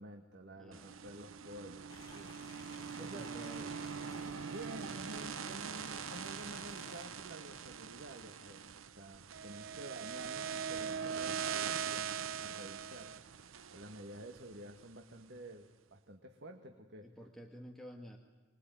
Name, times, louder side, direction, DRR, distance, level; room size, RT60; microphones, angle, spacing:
voice 1, 0.0-2.4 3.0-3.3 4.5-17.1, right 1 dB, 60° right, 5 dB, 1.8 m, -50 dB
voice 2, 0.6-1.2 2.9-3.8 17.0-18.2, equal, ahead, 2 dB, 1.8 m, -52 dB
sound 1, 0.7-14.9, right 7 dB, 85° right, 0.8 m, -42 dB
sound 2, 1.9-7.1, left 1 dB, 20° left, 7.5 m, -55 dB
26.0 x 22.0 x 9.3 m, 1.3 s
head